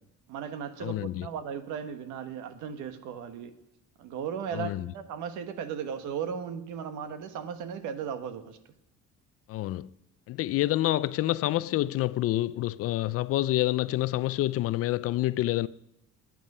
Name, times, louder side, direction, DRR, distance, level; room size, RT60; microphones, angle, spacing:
voice 1, 0.3-3.5 4.0-8.6, right 7 dB, 80° right, 1.4 m, -36 dB
voice 2, 0.8-1.3 4.5-4.9 9.5-9.9 10.3-15.7, left 15 dB, 50° left, 0.4 m, -27 dB
21.0 x 9.2 x 5.5 m
cardioid pair, 175°, 30 cm